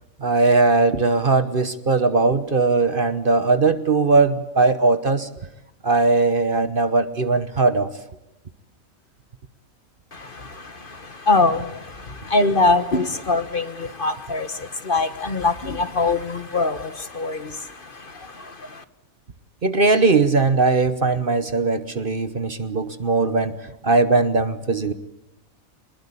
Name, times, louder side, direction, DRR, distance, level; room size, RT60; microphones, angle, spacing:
voice 1, 0.2-5.3 5.8-7.9 19.6-23.6 23.8-24.9, right 3 dB, 40° right, 12 dB, 1.2 m, -19 dB
voice 2, 11.3-11.6 12.3-14.5 14.9-16.8 17.2-17.4, left 3 dB, 40° left, 11 dB, 1.5 m, -21 dB
24.5 x 21.0 x 8.5 m, 0.89 s
omnidirectional pair, 1.4 m